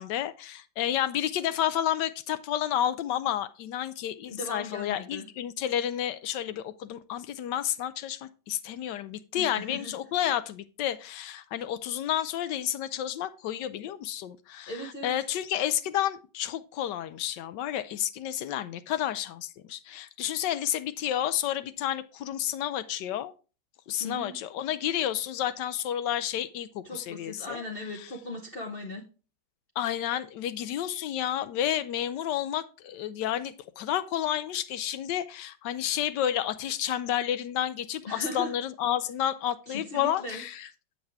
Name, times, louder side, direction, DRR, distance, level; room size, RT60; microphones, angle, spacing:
voice 1, 0.0-23.3 23.9-27.6 28.0-28.1 29.8-40.7, left 11 dB, 80° left, 1.2 m, -31 dB
voice 2, 4.3-5.2 9.4-9.9 14.7-15.1 24.0-24.4 26.8-29.0 38.1-38.5 39.7-40.4, left 1 dB, 40° left, 0.9 m, -38 dB
7.6 x 7.2 x 3.4 m
omnidirectional pair, 1.9 m